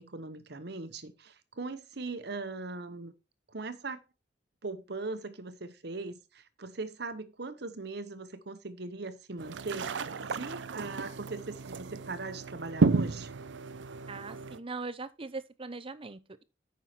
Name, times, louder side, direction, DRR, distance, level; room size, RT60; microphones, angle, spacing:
voice 1, 0.0-3.1 3.5-4.0 4.6-10.0 10.3-13.3, right 3 dB, 65° right, 1.0 m, -40 dB
sound 1, 9.4-14.6, right 4 dB, 90° right, 0.5 m, -32 dB
voice 2, 14.1-16.4, right 3 dB, 30° right, 0.7 m, -40 dB
9.0 x 5.8 x 4.5 m
head